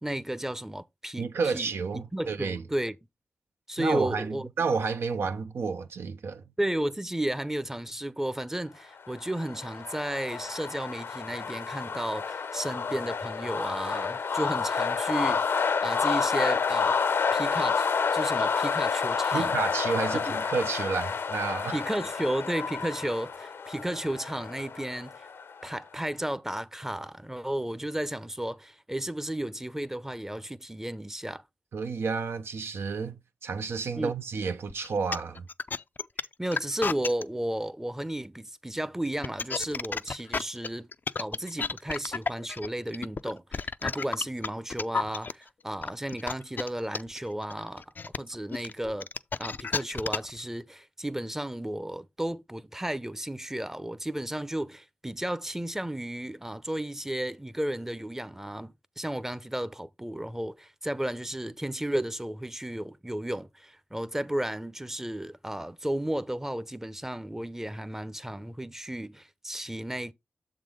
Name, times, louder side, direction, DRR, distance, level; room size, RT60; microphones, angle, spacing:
voice 1, 0.0-3.0 3.7-4.5 6.6-17.0 17.3-19.6 20.3-20.4 21.7-25.3 25.6-31.4 34.0-34.1 36.4-40.9 41.2-47.8 48.2-49.1 49.4-70.1, right 1 dB, 10° right, 0.6 m, -33 dB
voice 2, 1.2-2.6 3.8-6.4 19.3-21.8 31.7-35.5, right 5 dB, 80° right, 0.6 m, -30 dB
sound 1, 9.1-25.7, left 5 dB, 80° left, 0.7 m, -29 dB
sound 2, 34.7-37.2 39.1-45.3 45.8-50.4, left 4 dB, 50° left, 0.4 m, -32 dB
7.2 x 3.7 x 4.8 m
cardioid pair, 65°, 4 cm